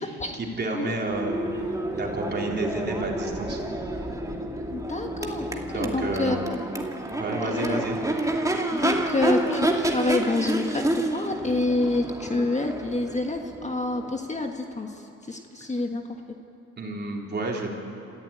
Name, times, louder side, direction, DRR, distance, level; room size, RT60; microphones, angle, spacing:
voice 1, 0.3-1.4 1.9-3.6 5.7-6.4 7.2-8.0 16.8-17.7, right 2 dB, 35° right, -1 dB, 4.1 m, -30 dB
Crowd / Race car auto racing / Accelerating revving vroom, 0.9-14.8, right 1 dB, 10° right, 2.3 m, -29 dB
voice 2, 4.7-6.6 7.4-7.8 8.7-16.2, left 2 dB, 25° left, 4 dB, 1.6 m, -28 dB
27.0 x 15.5 x 9.1 m, 2.7 s
cardioid pair, 90°, 30 cm